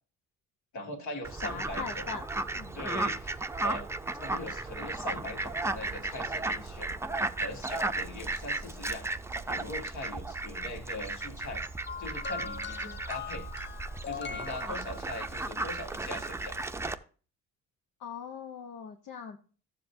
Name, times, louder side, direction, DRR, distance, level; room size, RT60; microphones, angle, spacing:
voice 1, 0.7-2.1 2.8-3.8 4.2-6.9 7.4-9.0 9.5-11.6 12.0-13.5 14.0-16.6, left 2 dB, 70° left, 4 dB, 2.1 m, -41 dB
Fowl, 1.2-16.9, right 2 dB, 10° right, 0.5 m, -35 dB
voice 2, 1.4-2.2 2.5-2.8 18.0-19.4, left 6 dB, 85° left, 3 dB, 1.1 m, -40 dB
sound 1, 11.9-15.4 16.5-16.6, left 6 dB, 40° left, 0.6 m, -40 dB
12.5 x 7.4 x 2.7 m, 0.38 s
cardioid pair, 90°, 30 cm